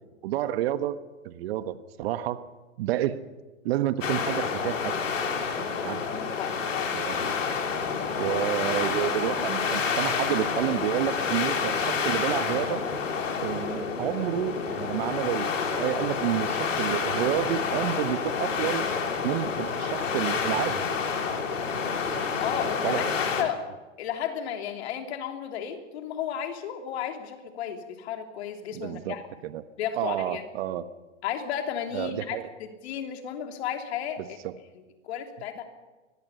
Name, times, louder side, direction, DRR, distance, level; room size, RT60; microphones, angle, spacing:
voice 1, 0.2-1.0 1.2-2.4 2.8-3.2 3.6-4.9 5.8-6.0 6.9-7.5 8.2-12.8 13.4-18.8 19.2-20.8 22.8-23.0 23.4-23.5 28.7-29.2 29.4-29.6 30.0-30.8 31.9-32.5 34.4-34.5, right 12 dB, 50° right, 12 dB, 1.3 m, -29 dB
sound 1, 4.0-23.4, left 5 dB, 80° left, 3.2 m, -29 dB
voice 2, 6.1-7.0 22.4-23.6 24.0-29.2 29.8-30.4 31.2-34.4 34.7-35.6, left 9 dB, 55° left, 5 dB, 3.2 m, -33 dB
23.5 x 19.5 x 5.7 m, 1.2 s
hypercardioid pair, 110°, 38 cm